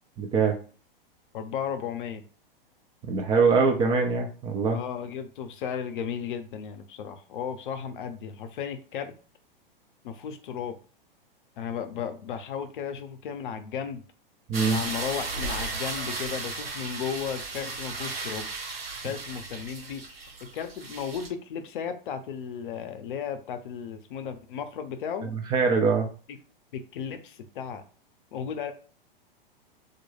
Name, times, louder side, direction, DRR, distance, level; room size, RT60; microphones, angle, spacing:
voice 1, 0.2-0.6 3.0-4.8 14.5-14.8 25.5-26.1, right 4 dB, 15° right, 2 dB, 0.3 m, -23 dB
voice 2, 1.3-2.2 4.7-9.1 10.0-10.8 11.6-14.0 14.6-18.5 19.0-25.3 26.7-27.8 28.3-28.7, left 7 dB, 60° left, 8 dB, 0.6 m, -35 dB
sound 1, 14.5-21.3, right 3 dB, 85° right, 0.8 m, -35 dB
2.4 x 2.2 x 3.1 m, 0.37 s
hypercardioid pair, 110°, 29 cm